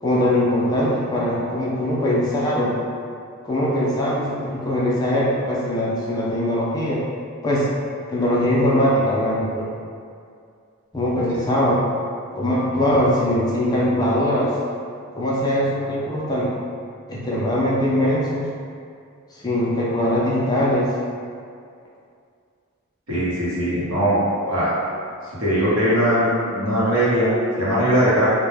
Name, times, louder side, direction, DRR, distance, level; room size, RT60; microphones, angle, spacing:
voice 1, 0.0-2.8 3.4-7.0 7.4-7.7 8.1-9.7 10.9-11.9 12.3-14.5 15.2-16.5 17.1-18.5 19.4-20.9, left 1 dB, 20° left, -6 dB, 0.3 m, -21 dB
voice 2, 23.1-24.7 25.4-28.3, equal, 80° right, -9 dB, 0.9 m, -20 dB
2.1 x 2.1 x 3.2 m, 2.3 s
head